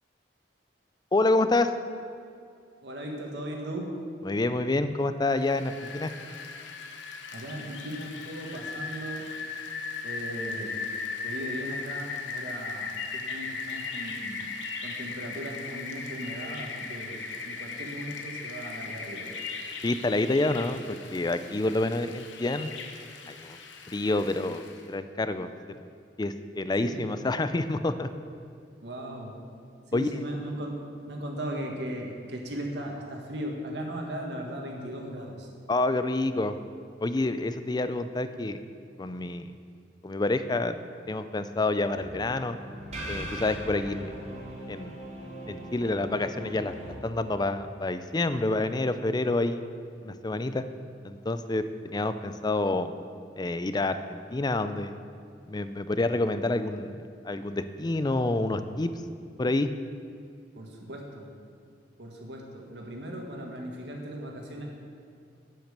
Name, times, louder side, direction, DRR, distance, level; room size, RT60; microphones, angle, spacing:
voice 1, 1.1-1.7 4.2-6.1 19.8-22.7 23.3-23.6 23.9-25.9 26.2-28.1 29.9-30.1 35.7-36.6 37.0-38.6 39.0-39.5 40.0-40.7 41.1-42.6 43.1-44.3 44.7-45.0 45.5-49.6 50.0-50.6 51.0-53.0 53.4-54.9 55.5-58.9 59.4-59.7, left 2 dB, 25° left, 11 dB, 0.4 m, -28 dB
voice 2, 2.8-3.9 7.3-9.3 10.0-10.8 11.2-14.5 14.8-19.3 26.8-27.0 28.8-29.4 29.9-30.8 31.1-35.5 60.6-61.3 62.0-64.7, right 1 dB, 65° right, 1 dB, 1.8 m, -37 dB
Rain, 5.4-24.9, left 4 dB, 85° left, 1.0 m, -38 dB
sound 1, 41.9-46.9, right 1 dB, 40° right, 2.5 m, -40 dB
9.0 x 8.5 x 6.6 m, 2.3 s
head